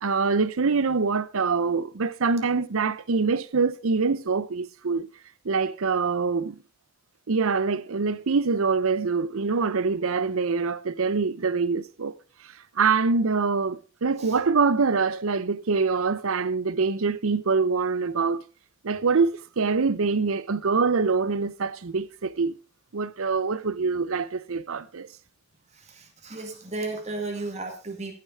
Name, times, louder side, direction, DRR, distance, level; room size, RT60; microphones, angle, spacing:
voice 1, 0.0-5.1 5.4-6.6 7.3-12.2 12.8-18.4 18.8-22.5 22.9-25.1, right 4 dB, 70° right, 0.6 m, -24 dB
voice 2, 25.7-28.1, right 2 dB, 30° right, 2.1 m, -34 dB
15.0 x 6.7 x 4.8 m
head